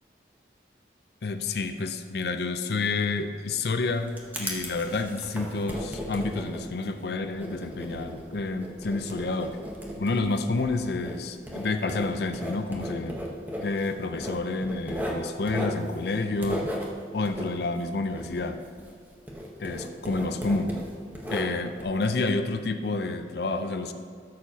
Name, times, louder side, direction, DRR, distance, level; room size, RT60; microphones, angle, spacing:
voice 1, 1.2-9.6 10.0-13.2 13.6-16.7 17.1-18.6 19.6-20.7 21.3-23.9, left 3 dB, 65° left, 8 dB, 0.5 m, -29 dB
Writing, 3.7-19.0 19.3-21.8, equal, 10° right, 0.9 m, -36 dB
13.0 x 6.8 x 2.8 m, 2.1 s
head